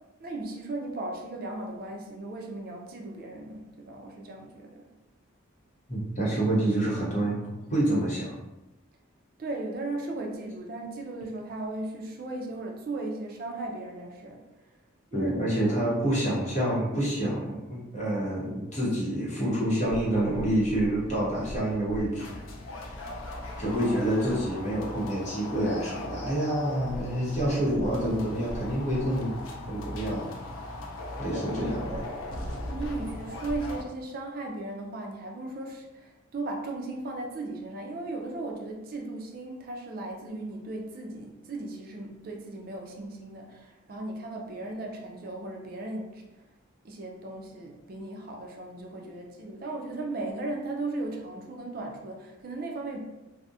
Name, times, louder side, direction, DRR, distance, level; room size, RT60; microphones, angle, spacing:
voice 1, 0.2-4.9 9.4-14.7 15.1-15.4 15.6-15.9 31.3-31.6 31.9-32.0 32.6-46.5 46.8-53.0, right 2 dB, 45° right, 1 dB, 0.3 m, -37 dB
voice 2, 5.9-8.3 15.1-22.4 22.7-22.8 23.6-29.3 29.7-30.3 31.2-32.0, right 1 dB, 35° left, -7 dB, 0.7 m, -27 dB
sound 1, 19.8-33.8, left 1 dB, 75° left, 0.4 m, -38 dB
2.3 x 2.0 x 2.6 m, 1.0 s
head